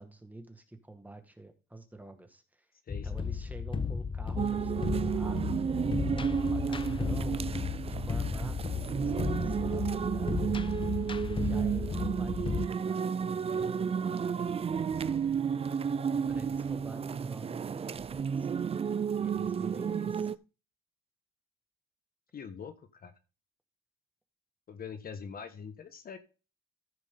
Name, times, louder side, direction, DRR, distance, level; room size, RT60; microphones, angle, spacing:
voice 1, 0.0-2.7 3.0-7.6 8.1-10.4 11.1-15.3 16.3-18.5 19.2-20.3, right 2 dB, 10° right, 5 dB, 1.8 m, -48 dB
voice 2, 2.9-3.3 22.3-23.1 24.7-26.2, left 6 dB, 50° left, 9 dB, 1.2 m, -43 dB
sound 1, 2.9-12.7, left 5 dB, 25° left, 0.6 m, -34 dB
sound 2, 4.4-20.3, right 7 dB, 30° right, 0.4 m, -32 dB
14.5 x 4.9 x 3.8 m, 0.33 s
cardioid pair, 90°, 20 cm